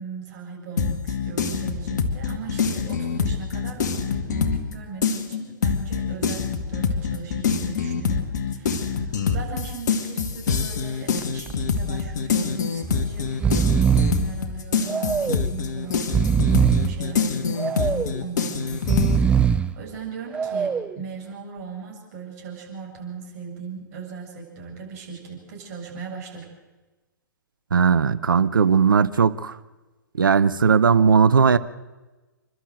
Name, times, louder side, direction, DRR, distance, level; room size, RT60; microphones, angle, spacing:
voice 1, 0.0-26.5, right 5 dB, 45° right, 7.6 m, -38 dB
sound 1, 0.8-4.7 5.0-19.2, left 6 dB, 55° left, 2.0 m, -25 dB
Breathing, 11.2-11.5 11.9-12.0 12.8-13.0 13.3-14.3 14.9-15.5 16.0-17.0 17.6-18.2 18.7-19.7 20.3-21.0, right 7 dB, 10° right, 0.6 m, -22 dB
voice 2, 27.7-29.6 30.2-31.6, right 6 dB, 75° right, 0.9 m, -18 dB
28.5 x 12.5 x 7.8 m
figure-of-eight pair, 115°, 11 cm